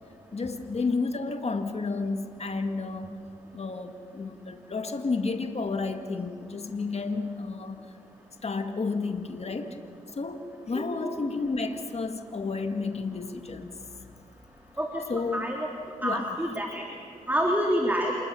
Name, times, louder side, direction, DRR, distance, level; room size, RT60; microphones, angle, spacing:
voice 1, 0.3-3.2 3.5-7.9 8.4-9.8 10.1-13.8 15.1-15.5 16.0-16.2, left 4 dB, 45° left, 7 dB, 1.9 m, -31 dB
voice 2, 10.8-11.2 14.8-15.7 16.0-16.8 17.3-18.1, equal, 10° right, 0 dB, 3.2 m, -28 dB
27.0 x 21.0 x 6.9 m, 2.4 s
cardioid pair, 55°, 14 cm